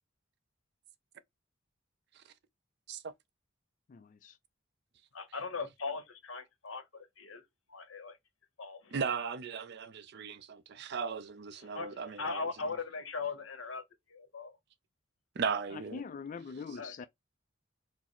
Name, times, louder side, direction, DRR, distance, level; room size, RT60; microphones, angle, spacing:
voice 1, 3.9-4.4 15.7-17.1, left 5 dB, 40° left, 0.3 m, -43 dB
voice 2, 5.1-8.2 8.6-9.0 11.6-14.6 16.8-17.1, left 4 dB, 85° left, 1.0 m, -40 dB
voice 3, 8.9-12.4 15.4-16.0, right 5 dB, 55° right, 0.5 m, -37 dB
4.6 x 2.0 x 4.3 m
head